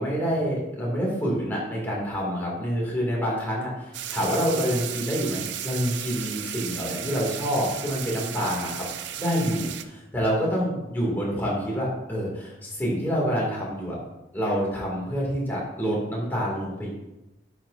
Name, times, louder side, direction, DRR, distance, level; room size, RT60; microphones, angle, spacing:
voice 1, 0.0-3.7 4.1-8.9 9.2-14.0 14.3-16.9, equal, 10° left, -5 dB, 2.2 m, -27 dB
sound 1, 3.9-9.8, right 10 dB, 60° right, 0.4 m, -34 dB
10.0 x 6.1 x 2.6 m, 0.97 s
head